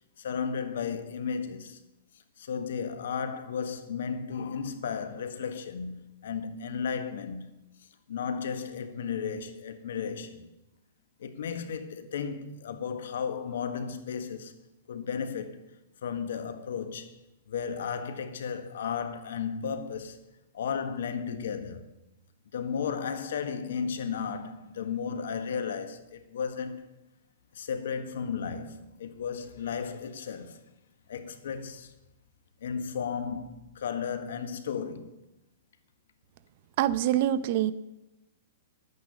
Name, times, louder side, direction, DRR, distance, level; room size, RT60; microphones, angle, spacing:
voice 1, 0.2-1.8 2.4-7.5 8.1-10.5 11.2-14.5 14.9-15.6 16.0-17.2 17.5-20.2 20.5-21.9 22.5-26.9 27.5-30.6 31.1-31.9 32.6-35.2, left 6 dB, 75° left, 1.5 m, -34 dB
voice 2, 36.8-37.7, right 12 dB, 50° right, 0.7 m, -25 dB
11.0 x 9.6 x 6.8 m
hypercardioid pair, 150°, 0 cm